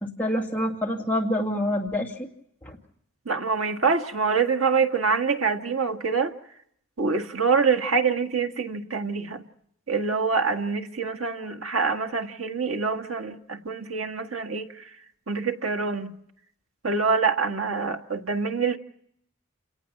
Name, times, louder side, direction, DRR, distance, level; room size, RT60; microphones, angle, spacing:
voice 1, 0.0-2.3 2.6-2.8, left 1 dB, 10° left, 2.3 m, -27 dB
voice 2, 3.2-6.3 7.0-9.4 9.9-14.9 15.3-16.1 16.8-18.8, right 5 dB, 80° right, 1.7 m, -25 dB
29.0 x 18.5 x 5.9 m
head